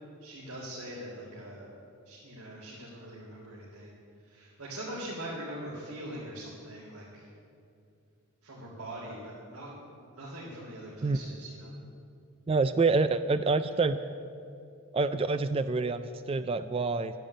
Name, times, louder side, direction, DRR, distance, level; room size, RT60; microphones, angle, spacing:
voice 1, 0.2-1.7 2.0-3.9 4.2-7.3 8.4-11.7, right 1 dB, 85° right, -6 dB, 3.4 m, -42 dB
voice 2, 12.5-14.0 14.9-17.1, right 3 dB, 25° right, 11 dB, 0.3 m, -27 dB
12.5 x 10.5 x 8.7 m, 2.5 s
head